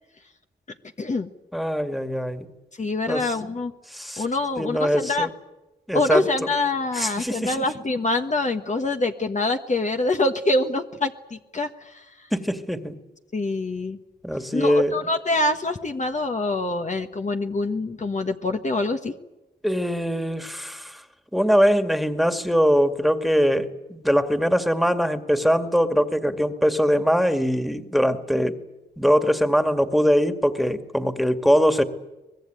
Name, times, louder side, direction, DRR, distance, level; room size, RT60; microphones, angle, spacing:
voice 1, 1.0-1.3 2.8-3.7 4.2-5.3 5.9-12.0 13.3-14.0 14.5-19.1, left 2 dB, 40° left, 5 dB, 1.4 m, -25 dB
voice 2, 1.5-2.5 3.1-3.5 3.9-4.2 4.6-5.3 5.9-6.2 6.9-7.7 12.3-12.9 14.2-15.0 19.6-21.0 21.3-28.6 29.0-31.8, equal, ahead, 8 dB, 2.1 m, -22 dB
24.0 x 20.0 x 9.1 m, 1.0 s
cardioid pair, 65°, 18 cm